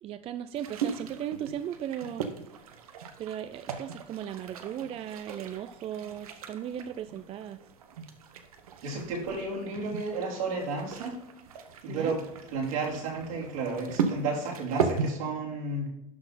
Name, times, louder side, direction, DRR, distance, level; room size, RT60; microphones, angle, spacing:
voice 1, 0.0-2.3 3.2-7.6 11.9-12.2, right 10 dB, 35° right, 11 dB, 0.4 m, -37 dB
sound 1, 0.5-15.1, right 6 dB, 90° right, 1.0 m, -37 dB
voice 2, 8.8-11.2 11.8-12.2 12.5-15.8, right 3 dB, 75° right, -3 dB, 3.3 m, -32 dB
12.0 x 4.1 x 4.1 m, 0.84 s
hypercardioid pair, 105°, 18 cm